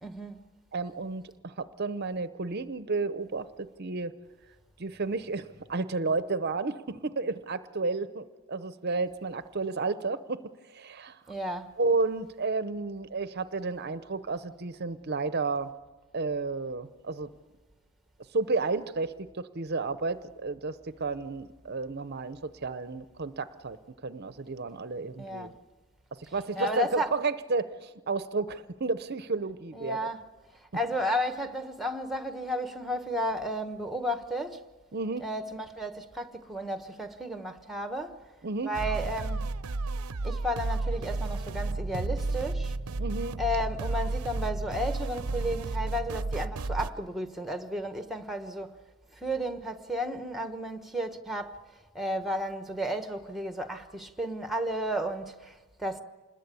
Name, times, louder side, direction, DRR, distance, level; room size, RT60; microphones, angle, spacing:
voice 1, 0.0-0.5 11.3-11.7 25.2-25.5 26.5-27.1 29.7-30.2 30.7-34.6 35.2-38.1 38.6-39.5 40.2-42.7 43.4-48.8 49.1-51.6 51.9-56.0, equal, ahead, 1.2 m, -33 dB
voice 2, 0.7-4.2 4.8-10.4 10.7-11.2 11.8-15.7 16.1-17.3 18.3-23.8 24.0-25.5 26.1-30.0 34.9-35.2 38.4-38.7 43.0-43.4, right 3 dB, 45° right, 0.7 m, -32 dB
sound 1, 38.7-46.9, right 3 dB, 85° right, 0.7 m, -32 dB
27.0 x 21.0 x 8.4 m
head